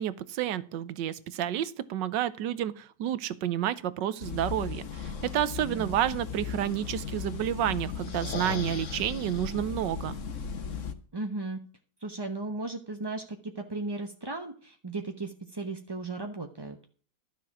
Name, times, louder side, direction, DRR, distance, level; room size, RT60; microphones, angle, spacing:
voice 1, 0.0-10.2, right 11 dB, 80° right, 16 dB, 1.5 m, -30 dB
sound 1, 4.2-10.9, left 6 dB, 45° left, 1.4 m, -36 dB
voice 2, 11.1-11.6 12.0-16.8, right 2 dB, 20° right, 5 dB, 0.6 m, -36 dB
12.5 x 6.9 x 6.0 m, 0.43 s
omnidirectional pair, 1.9 m